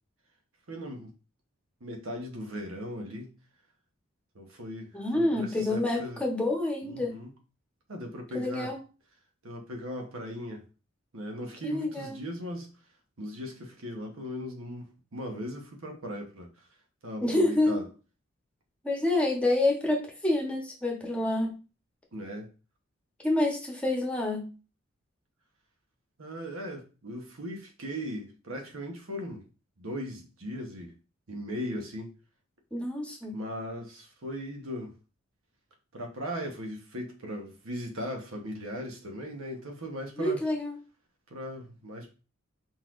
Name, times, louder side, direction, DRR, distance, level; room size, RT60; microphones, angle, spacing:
voice 1, 0.7-1.1 1.8-3.3 4.3-6.2 6.8-7.3 7.9-8.7 9.4-10.6 11.1-12.7 13.2-16.5 17.0-17.9 22.1-22.5 26.2-29.4 29.8-30.9 31.3-32.1 33.3-34.9 35.9-40.4 41.3-42.1, equal, 85° right, 1.1 m, -38 dB
voice 2, 4.9-7.1 8.3-8.8 11.6-12.1 17.2-17.8 18.8-21.5 23.2-24.5 32.7-33.4 40.2-40.7, left 2 dB, 5° left, 1.0 m, -27 dB
4.4 x 4.0 x 2.5 m
head